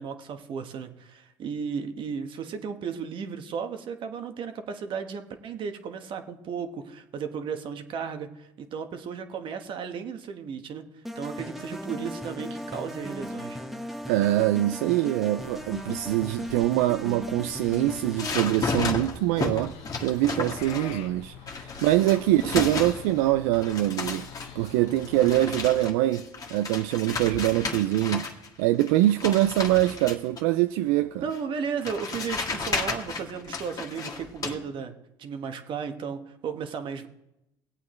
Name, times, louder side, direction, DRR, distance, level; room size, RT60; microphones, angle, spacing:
voice 1, 0.0-10.8 11.1-13.6 31.2-34.9 35.2-37.1, right 6 dB, 50° right, 1.3 m, -34 dB
sound 1, 11.0-18.7, equal, ahead, 1.0 m, -37 dB
voice 2, 14.1-24.3 24.6-28.3 28.6-31.2, right 15 dB, 85° right, 0.4 m, -24 dB
sound 2, 15.4-25.5, left 8 dB, 75° left, 0.8 m, -46 dB
sound 3, 17.6-21.1 21.5-23.3 23.5-28.5 28.8-30.4 31.3-31.4 31.9-34.5, left 4 dB, 35° left, 1.7 m, -33 dB
18.5 x 8.3 x 3.2 m
supercardioid pair, 95°, 10 cm